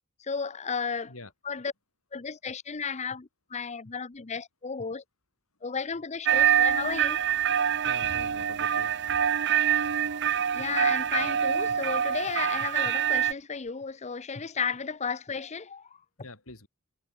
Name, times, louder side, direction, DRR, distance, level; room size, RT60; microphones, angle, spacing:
voice 1, 0.2-1.1 1.5-1.7 2.1-5.0 5.6-7.2 10.5-16.0, left 5 dB, 35° left, 0.7 m, -33 dB
sound 1, 6.3-13.3, right 9 dB, 55° right, 0.8 m, -25 dB
voice 2, 7.8-9.0 16.2-16.7, left 2 dB, 85° left, 5.4 m, -45 dB
head